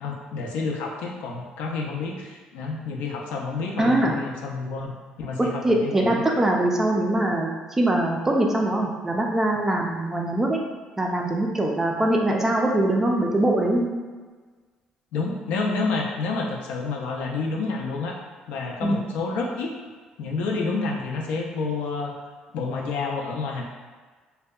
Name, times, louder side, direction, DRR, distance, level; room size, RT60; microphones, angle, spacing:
voice 1, 0.0-6.2 15.1-18.2 18.5-19.7 20.2-22.1 22.5-23.6, left 4 dB, 80° left, 0 dB, 0.4 m, -29 dB
voice 2, 3.8-4.1 5.4-10.6 11.0-13.9 18.8-19.0, right 1 dB, 15° right, 0 dB, 0.4 m, -22 dB
2.6 x 2.1 x 2.3 m, 1.4 s
cardioid pair, 100°, 2 cm